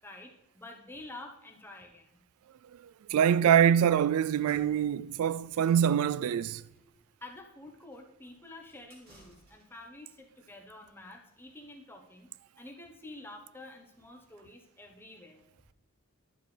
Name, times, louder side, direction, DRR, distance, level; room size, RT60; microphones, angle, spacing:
voice 1, 0.0-2.2 7.2-12.3 12.6-15.4, left 2 dB, 10° left, 1.0 m, -49 dB
voice 2, 2.7-6.6, right 9 dB, 90° right, 0.3 m, -25 dB
sound 1, 4.3-9.9, right 1 dB, 45° right, 2.6 m, -62 dB
11.0 x 7.3 x 3.3 m
head